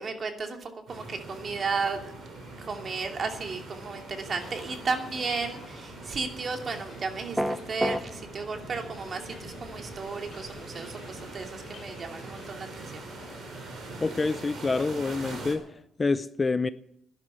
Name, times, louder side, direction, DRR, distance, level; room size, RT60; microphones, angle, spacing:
voice 1, 0.0-2.1 2.6-13.1, right 4 dB, 45° right, 2.7 m, -34 dB
sound 1, 0.9-15.5, right 2 dB, 60° right, 4.9 m, -43 dB
Subway metro underground, 2.2-15.8, left 3 dB, 45° left, 5.1 m, -52 dB
sound 2, 7.4-8.0, equal, 10° right, 1.0 m, -26 dB
voice 2, 14.0-15.6 16.0-16.7, left 3 dB, 25° left, 0.6 m, -27 dB
12.5 x 11.0 x 9.9 m
cardioid pair, 90°, 0 cm